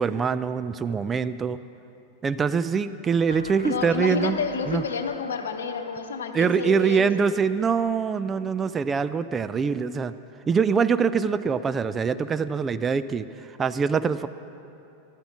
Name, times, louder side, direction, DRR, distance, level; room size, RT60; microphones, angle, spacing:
voice 1, 0.0-1.6 2.2-4.4 4.7-4.8 6.3-10.1 10.5-13.2 13.6-14.3, right 6 dB, 20° right, 12 dB, 0.4 m, -24 dB
sound 1, 3.3-8.2, left 2 dB, 80° left, 0.6 m, -42 dB
voice 2, 3.6-7.1, left 5 dB, 65° left, 7 dB, 1.1 m, -30 dB
15.5 x 12.0 x 6.1 m, 2.9 s
figure-of-eight pair, 90°, 0 cm